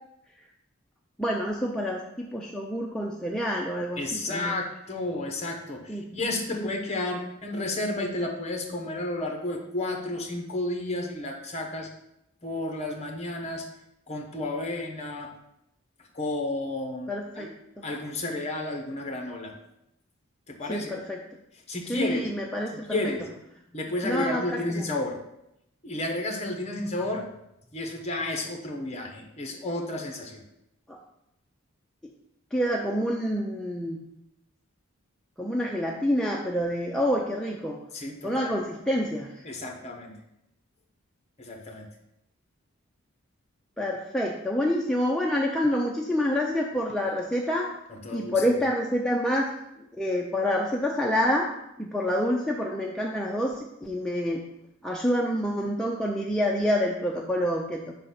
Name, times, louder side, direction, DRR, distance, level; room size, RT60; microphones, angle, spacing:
voice 1, 1.2-4.6 5.9-6.0 6.5-6.7 17.1-17.5 17.8-17.9 20.7-21.2 21.9-23.1 24.0-24.8 30.9-31.0 32.5-34.0 35.4-37.8 38.2-39.5 43.8-47.7 48.1-49.5 49.8-51.5 51.8-54.4 54.8-57.9, equal, 5° left, -2 dB, 0.4 m, -27 dB
voice 2, 4.0-11.9 12.4-13.6 14.1-15.3 16.1-17.5 17.8-19.5 20.5-20.9 21.7-22.3 22.9-23.3 23.7-25.2 25.8-27.3 27.7-30.4 37.9-38.5 39.4-40.2 41.4-41.8 47.9-48.6, left 2 dB, 30° left, 2 dB, 1.0 m, -32 dB
5.5 x 4.0 x 5.8 m, 0.82 s
head